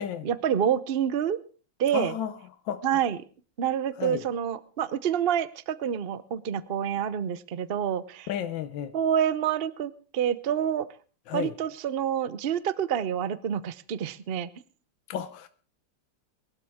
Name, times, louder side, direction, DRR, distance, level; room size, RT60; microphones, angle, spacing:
voice 1, 0.0-1.4 1.8-2.2 2.8-3.2 3.6-8.3 8.9-10.9 11.3-14.5, right 9 dB, 60° right, 0.6 m, -27 dB
voice 2, 1.9-2.3 2.6-2.8 4.0-4.2 8.3-8.9 11.3-11.5 15.1-15.5, left 9 dB, 75° left, 1.5 m, -32 dB
22.5 x 12.5 x 3.6 m
omnidirectional pair, 2.1 m